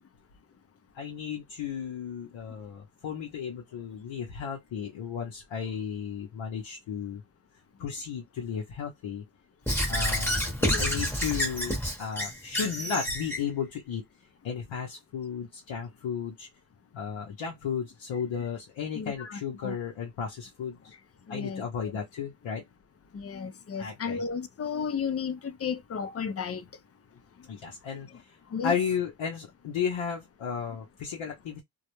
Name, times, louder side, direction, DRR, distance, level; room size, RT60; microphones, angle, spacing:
voice 1, 0.9-7.2 7.8-9.2 9.9-10.5 10.8-14.0 14.4-16.5 16.9-20.9 21.3-22.6 23.8-24.2 27.5-28.4 28.6-31.6, left 7 dB, 75° left, 0.7 m, -34 dB
Squeak / Writing, 9.7-13.4, equal, 5° left, 0.9 m, -28 dB
voice 2, 10.6-11.1 18.9-19.7 21.3-21.6 23.1-26.7 28.5-28.8, left 6 dB, 35° left, 0.4 m, -33 dB
2.2 x 2.0 x 2.9 m
cardioid pair, 95°, 47 cm